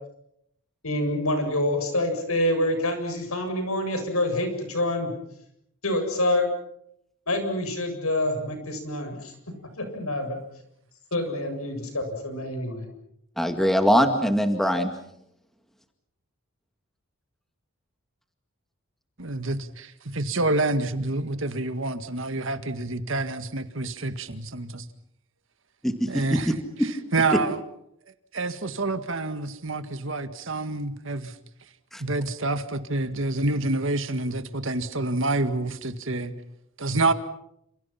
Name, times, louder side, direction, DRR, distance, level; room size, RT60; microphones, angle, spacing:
voice 1, 0.8-5.1 5.8-6.5 7.3-9.3 9.8-10.4 11.1-12.9, left 1 dB, 75° left, 7.7 m, -26 dB
voice 2, 13.4-14.9 25.8-26.1 26.5-26.6 31.9-32.0, equal, ahead, 2.1 m, -22 dB
voice 3, 19.2-24.9 26.1-27.6 28.3-31.4 32.0-36.3 36.8-37.1, right 2 dB, 60° right, 1.9 m, -28 dB
29.5 x 28.0 x 5.9 m
head